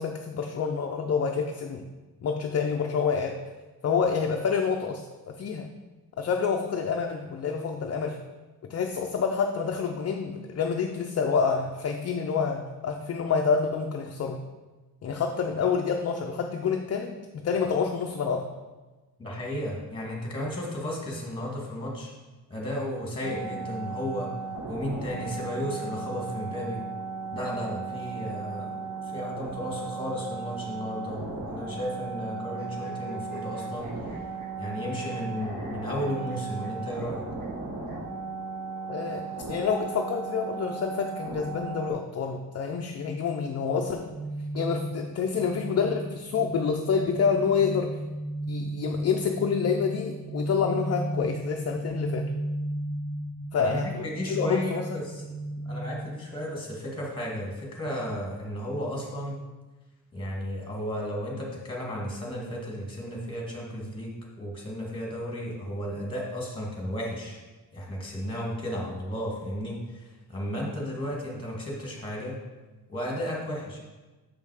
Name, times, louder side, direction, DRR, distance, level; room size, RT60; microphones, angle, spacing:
voice 1, 0.0-1.8 2.2-3.4 3.8-5.7 6.2-8.2 8.6-14.4 15.0-18.5 38.9-44.1 44.5-48.0 48.5-52.3 53.5-54.9, left 6 dB, 40° left, 3 dB, 0.5 m, -28 dB
voice 2, 19.2-22.1 22.5-24.3 24.7-26.8 27.3-28.7 29.0-34.1 34.6-37.2 53.5-55.2 55.6-59.3 60.1-67.4 67.7-72.4 72.9-73.8, equal, 15° left, -2 dB, 1.8 m, -34 dB
sound 1, 23.2-41.9, right 4 dB, 45° right, 1.2 m, -36 dB
low laugh, 32.5-35.1 35.3-36.7 37.0-37.1 37.4-37.5 37.8-38.0 39.0-40.0, equal, 25° right, 1.5 m, -49 dB
sound 2, 44.0-57.1, right 1 dB, 85° right, 1.4 m, -35 dB
6.6 x 5.5 x 4.8 m, 1.2 s
wide cardioid pair, 165°, 38 cm